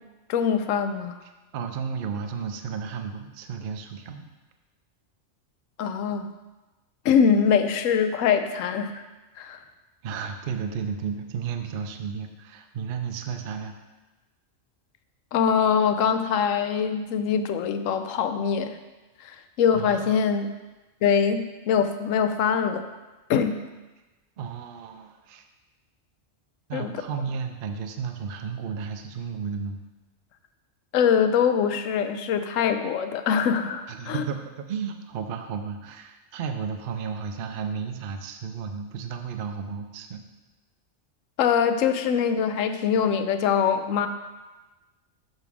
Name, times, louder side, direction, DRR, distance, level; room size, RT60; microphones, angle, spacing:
voice 1, 0.3-1.2 5.8-6.3 7.0-9.0 9.4-9.6 15.3-18.8 19.2-20.5 21.0-22.8 23.3-23.6 26.7-26.9 30.9-34.2 41.4-44.1, left 7 dB, 85° left, 8 dB, 1.0 m, -23 dB
voice 2, 1.5-4.3 10.0-13.8 19.7-20.1 24.4-25.4 26.7-29.8 33.9-40.2, right 6 dB, 55° right, 6 dB, 0.6 m, -33 dB
6.7 x 6.0 x 3.5 m, 1.1 s
omnidirectional pair, 1.3 m